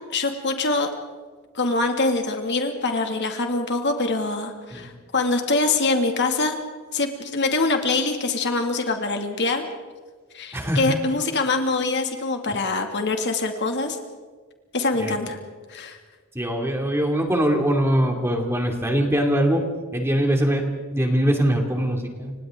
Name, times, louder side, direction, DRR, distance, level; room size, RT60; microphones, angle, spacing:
voice 1, 0.1-0.9 1.5-6.5 6.9-9.6 10.3-14.0 14.7-15.4 15.7-16.0, left 3 dB, 55° left, 4 dB, 2.4 m, -24 dB
voice 2, 10.5-11.0 15.0-15.2 16.3-19.7 19.9-20.7 20.9-22.3, equal, 10° right, 3 dB, 2.7 m, -22 dB
29.5 x 26.0 x 3.8 m, 1.4 s
head